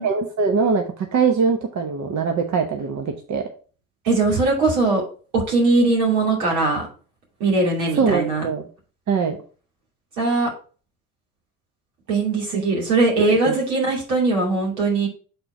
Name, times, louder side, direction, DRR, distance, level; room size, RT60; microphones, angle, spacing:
voice 1, 0.0-3.5 8.0-8.7 9.1-9.4 12.5-12.6 13.5-13.6, right 5 dB, 45° right, 4 dB, 1.0 m, -22 dB
voice 2, 4.0-5.0 5.3-6.9 7.4-8.5 10.2-10.5 12.1-15.1, right 3 dB, 70° right, -2 dB, 2.7 m, -20 dB
6.8 x 4.4 x 4.4 m, 0.39 s
figure-of-eight pair, 50°, 40 cm